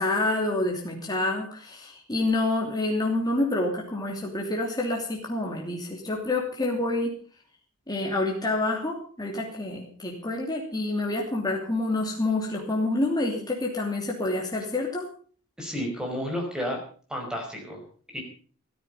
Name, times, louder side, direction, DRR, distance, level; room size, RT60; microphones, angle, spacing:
voice 1, 0.0-7.1 7.9-15.0, left 2 dB, 20° left, -1 dB, 2.8 m, -28 dB
voice 2, 15.6-16.8 17.1-17.8 18.1-18.2, equal, 5° right, 1 dB, 5.3 m, -31 dB
14.5 x 14.0 x 5.4 m, 0.43 s
head